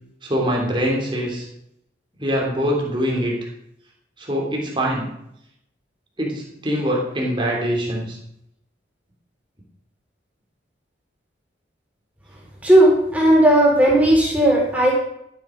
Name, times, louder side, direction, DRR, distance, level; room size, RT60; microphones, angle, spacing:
voice 1, 0.2-1.5 2.2-3.3 4.2-5.1 6.2-8.2, equal, 25° right, -1 dB, 3.2 m, -23 dB
voice 2, 12.6-14.9, right 1 dB, 10° right, -3 dB, 4.1 m, -15 dB
13.5 x 9.4 x 5.2 m, 0.77 s
head